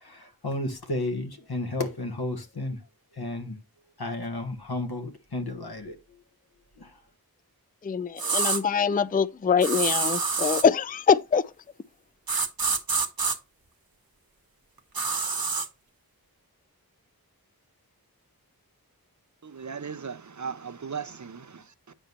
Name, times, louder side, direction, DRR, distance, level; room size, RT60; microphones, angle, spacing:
voice 1, 0.0-2.8 3.2-3.6 4.0-5.9 6.8-6.9, left 2 dB, 85° left, 1.5 m, -32 dB
voice 2, 7.8-11.4, left 6 dB, 25° left, 0.4 m, -23 dB
sound 1, 8.2-8.6 9.6-10.7 12.3-13.4 14.9-15.7, right 4 dB, 70° right, 1.1 m, -26 dB
voice 3, 19.4-21.9, right 6 dB, 50° right, 0.6 m, -37 dB
8.8 x 5.4 x 3.0 m
wide cardioid pair, 50°, 37 cm